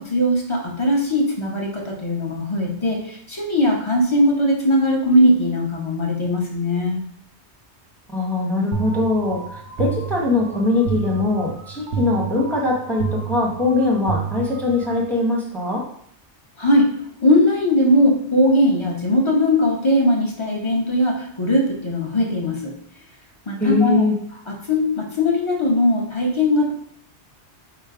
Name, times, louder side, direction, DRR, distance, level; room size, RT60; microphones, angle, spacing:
voice 1, 0.0-7.0 16.6-16.9 17.2-22.7 23.5-24.0 24.7-26.7, left 1 dB, 30° left, -1 dB, 0.7 m, -19 dB
voice 2, 8.1-15.8 23.6-24.2, left 3 dB, ahead, -2 dB, 0.9 m, -21 dB
sound 1, 8.7-15.1, right 7 dB, 80° right, 0.9 m, -30 dB
4.9 x 2.1 x 4.7 m, 0.64 s
omnidirectional pair, 1.1 m